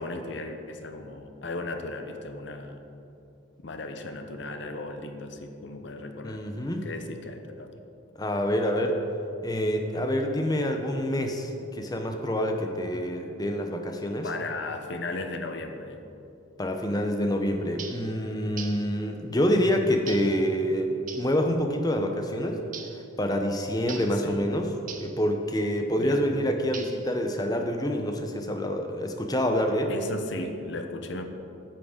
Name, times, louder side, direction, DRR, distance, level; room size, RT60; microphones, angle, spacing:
voice 1, 0.0-2.8 3.6-6.4 6.8-7.7 14.2-16.0 24.1-24.4 25.9-26.3 29.9-31.2, left 2 dB, 60° left, 6 dB, 0.7 m, -36 dB
voice 2, 6.2-6.9 8.2-9.0 9.4-14.3 16.6-22.6 23.2-24.7 25.0-29.9, equal, 20° left, 4 dB, 0.6 m, -27 dB
sound 1, 17.8-18.1 18.6-18.9 20.1-20.4 21.1-21.3 22.7-23.0 23.9-24.2 24.9-25.2 26.7-27.2, right 7 dB, 40° right, 0.7 m, -40 dB
8.8 x 7.5 x 5.0 m, 2.8 s
head